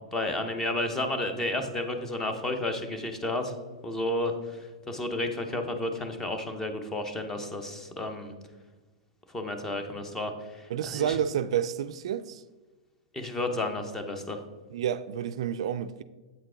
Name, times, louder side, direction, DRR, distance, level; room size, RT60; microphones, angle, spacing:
voice 1, 0.1-3.5 3.8-8.3 9.3-11.2 13.1-14.4, left 1 dB, 15° left, 0.9 m, -32 dB
voice 2, 10.7-12.4 14.7-16.0, right 9 dB, 70° right, 0.3 m, -29 dB
8.0 x 4.5 x 3.7 m
hypercardioid pair, 125°, 3 cm